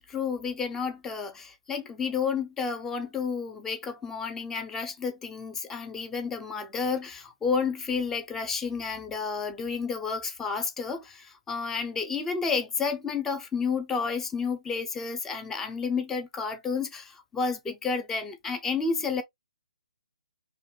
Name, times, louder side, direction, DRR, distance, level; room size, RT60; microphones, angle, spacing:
voice 1, 0.0-19.2, left 5 dB, 10° left, 0.9 m, -31 dB
4.6 x 3.2 x 3.2 m
figure-of-eight pair, 135°, 3 cm